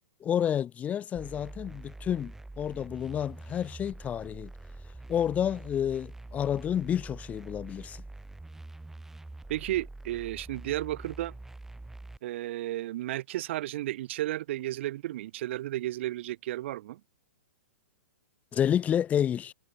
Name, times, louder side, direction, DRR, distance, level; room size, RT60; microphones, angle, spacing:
voice 1, 0.2-4.5 5.1-8.0 18.5-19.5, left 9 dB, 20° left, 0.5 m, -30 dB
sound 1, 1.1-12.2, right 2 dB, 5° right, 1.1 m, -45 dB
voice 2, 9.5-11.4 12.2-17.0, right 15 dB, 50° right, 1.0 m, -33 dB
figure-of-eight pair, 115°, 8 cm